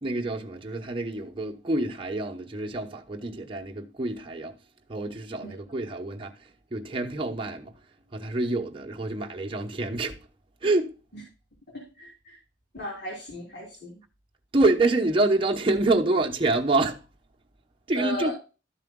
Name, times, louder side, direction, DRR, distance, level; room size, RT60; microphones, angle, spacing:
voice 1, 0.0-4.5 4.9-6.3 6.7-7.7 8.1-10.2 10.6-10.9 14.5-17.0 17.9-18.3, right 2 dB, 30° right, 0.9 m, -26 dB
voice 2, 12.0-12.4 12.7-13.9 17.9-18.3, right 1 dB, 65° left, 3.2 m, -35 dB
13.0 x 7.4 x 2.3 m
head